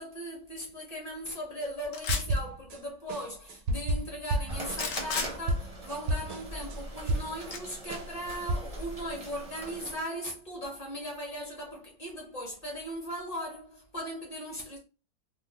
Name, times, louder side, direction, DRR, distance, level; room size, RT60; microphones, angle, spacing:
voice 1, 0.0-14.8, equal, 35° left, 0.6 m, -38 dB
sound 1, 1.9-2.4 4.7-5.3 7.5-7.6, left 5 dB, 80° left, 0.7 m, -32 dB
sound 2, 2.1-2.8 3.1-7.6 7.9-8.5, right 1 dB, 80° right, 1.3 m, -31 dB
sound 3, 4.5-10.0, right 1 dB, 40° right, 0.5 m, -42 dB
3.1 x 2.0 x 3.2 m
omnidirectional pair, 2.0 m